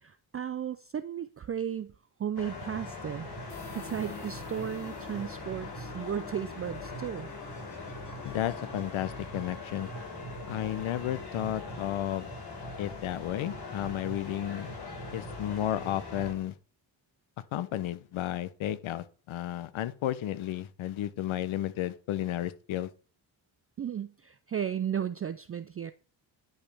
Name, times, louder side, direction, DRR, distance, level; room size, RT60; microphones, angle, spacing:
voice 1, 0.0-1.9 2.2-3.3 3.7-7.3 23.8-25.9, right 9 dB, 30° right, 0.4 m, -35 dB
sound 1, 2.4-16.3, left 2 dB, 50° left, 4.7 m, -41 dB
sound 2, 3.5-13.1, left 4 dB, 35° left, 4.4 m, -52 dB
voice 2, 8.2-9.9 10.5-12.3 12.8-14.8 15.1-16.5 17.5-22.9, left 12 dB, 80° left, 0.8 m, -33 dB
10.5 x 5.4 x 3.4 m
cardioid pair, 80°, 48 cm